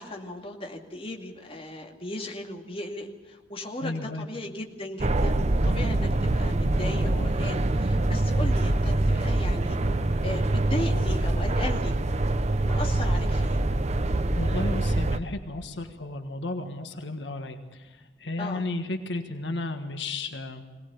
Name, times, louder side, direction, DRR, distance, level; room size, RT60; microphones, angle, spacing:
voice 1, 0.0-9.8 10.2-12.0 12.7-13.6 18.4-18.6, left 1 dB, 35° left, 2 dB, 2.3 m, -37 dB
voice 2, 3.8-4.3 14.4-20.6, left 2 dB, 80° left, 6 dB, 1.6 m, -33 dB
sound 1, 5.0-15.2, right 2 dB, 40° right, 0.9 m, -24 dB
22.0 x 19.0 x 7.0 m, 1.3 s
head